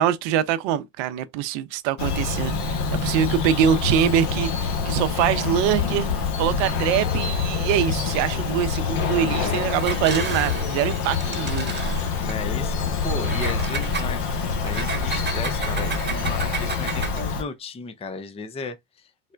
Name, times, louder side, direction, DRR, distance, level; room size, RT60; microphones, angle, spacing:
voice 1, 0.0-11.7, right 10 dB, 65° right, 0.7 m, -24 dB
Bird vocalization bird call bird song, 2.0-17.4, left 5 dB, 55° left, 1.1 m, -26 dB
voice 2, 9.2-9.6 12.1-19.1, left 4 dB, 15° left, 0.5 m, -35 dB
Engine, 9.7-12.4 13.2-17.3, right 5 dB, 20° right, 1.1 m, -33 dB
sound 1, 11.9-16.7, left 2 dB, 90° left, 0.8 m, -34 dB
4.1 x 2.1 x 2.3 m
hypercardioid pair, 75°, 48 cm